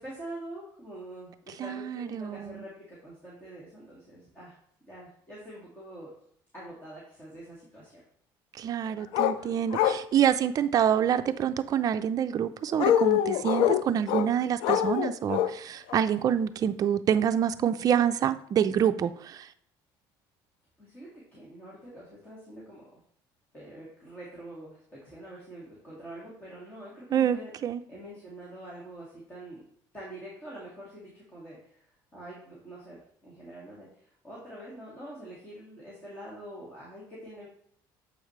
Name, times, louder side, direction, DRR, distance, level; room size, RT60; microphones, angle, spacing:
voice 1, 0.0-4.5 4.9-6.1 6.5-8.0 20.8-23.0 23.5-27.5 27.9-29.6 29.9-37.5, right 1 dB, 20° left, -7 dB, 2.2 m, -45 dB
voice 2, 1.6-2.6 8.5-19.5 27.1-27.8, right 9 dB, 40° right, 10 dB, 0.4 m, -27 dB
sound 1, 9.1-9.4 9.7-10.0 12.7-14.3 14.6-15.5 15.9-16.0, left 11 dB, 75° left, 0.4 m, -24 dB
7.2 x 4.9 x 3.2 m, 0.65 s
cardioid pair, 110°, 9 cm